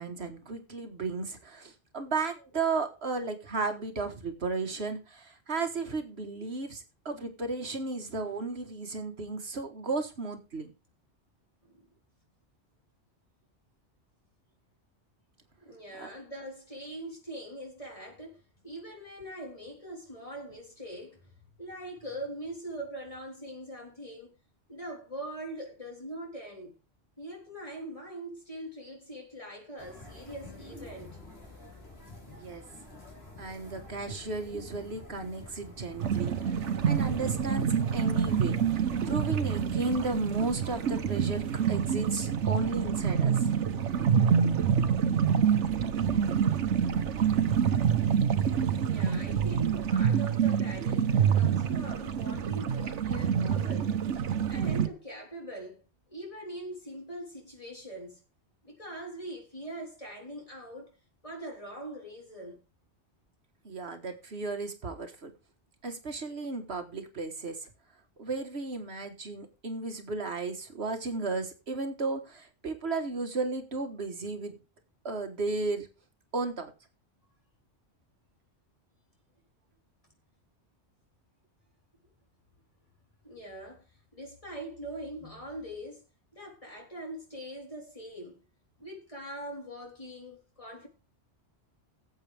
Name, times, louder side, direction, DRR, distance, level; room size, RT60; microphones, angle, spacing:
voice 1, 0.0-10.7 15.9-16.1 32.3-32.6 33.4-43.5 63.7-65.3 65.8-67.7 68.2-74.6 75.1-75.9 76.3-76.7, right 3 dB, 65° right, 1.7 m, -34 dB
voice 2, 15.6-21.3 21.6-24.3 24.7-26.7 27.2-31.2 48.8-54.0 54.5-58.2 58.6-61.0 61.2-62.6 83.2-86.0 86.3-88.4 88.8-90.9, right 1 dB, 30° left, 4.0 m, -42 dB
sound 1, 29.8-41.7, left 2 dB, 60° left, 4.3 m, -47 dB
sound 2, 36.0-54.9, right 7 dB, 85° right, 1.2 m, -27 dB
17.5 x 8.0 x 3.4 m
omnidirectional pair, 1.2 m